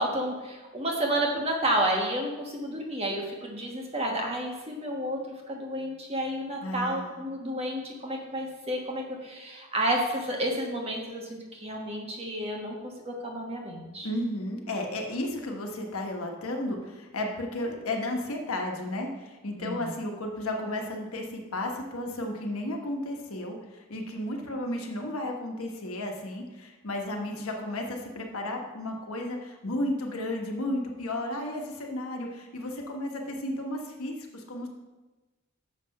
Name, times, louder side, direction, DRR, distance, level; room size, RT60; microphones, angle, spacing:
voice 1, 0.0-14.1 19.6-19.9, right 1 dB, 30° right, 0 dB, 1.2 m, -31 dB
voice 2, 6.6-7.2 14.0-34.7, left 1 dB, 85° left, 2 dB, 1.2 m, -33 dB
6.6 x 5.7 x 5.3 m, 1.2 s
head